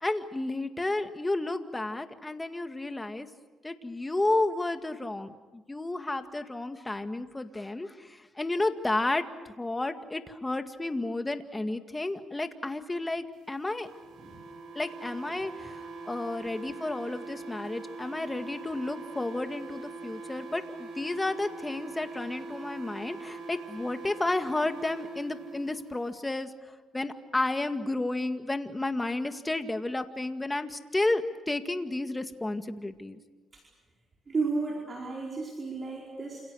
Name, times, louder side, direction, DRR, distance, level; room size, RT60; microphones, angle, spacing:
voice 1, 0.0-3.3 3.6-7.9 8.4-13.9 14.8-15.7 16.1-26.5 26.9-33.2, left 2 dB, 15° left, 8 dB, 2.1 m, -32 dB
sound 1, 13.7-25.8, right 3 dB, 85° right, 7.7 m, -42 dB
voice 2, 34.3-36.4, right 4 dB, 35° right, -1 dB, 5.1 m, -33 dB
29.5 x 27.5 x 6.5 m, 1.3 s
cardioid pair, 90°, 0 cm